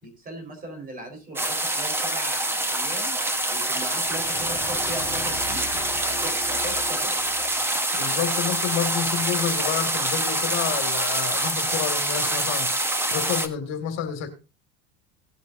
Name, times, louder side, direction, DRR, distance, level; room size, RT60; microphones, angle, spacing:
voice 1, 0.0-3.2 3.5-7.1, right 1 dB, 30° right, 4.5 m, -38 dB
sound 1, 1.4-13.5, right 1 dB, 10° right, 1.1 m, -25 dB
sound 2, 3.9-7.6, left 2 dB, 10° left, 1.6 m, -39 dB
voice 2, 7.9-12.7 13.1-14.3, left 9 dB, 60° left, 2.3 m, -29 dB
18.5 x 8.3 x 2.6 m
supercardioid pair, 130°, 29 cm